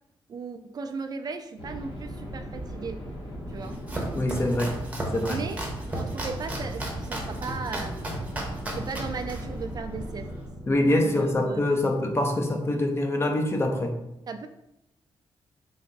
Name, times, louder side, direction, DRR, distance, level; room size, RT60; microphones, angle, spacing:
voice 1, 0.3-3.0 3.5-3.8 5.3-5.6 5.9-8.3 8.7-10.3 10.9-11.8 14.3-14.5, right 4 dB, 45° right, 8 dB, 0.3 m, -36 dB
sound 1, 1.6-12.3, equal, 70° left, 1.3 m, -38 dB
Domestic sounds home sounds, 3.5-10.5, right 1 dB, 15° right, 0.9 m, -35 dB
voice 2, 4.1-4.7 5.1-5.4 10.7-13.9, left 1 dB, 25° left, 3 dB, 0.7 m, -24 dB
3.9 x 3.3 x 3.9 m, 0.87 s
wide cardioid pair, 130°, 9 cm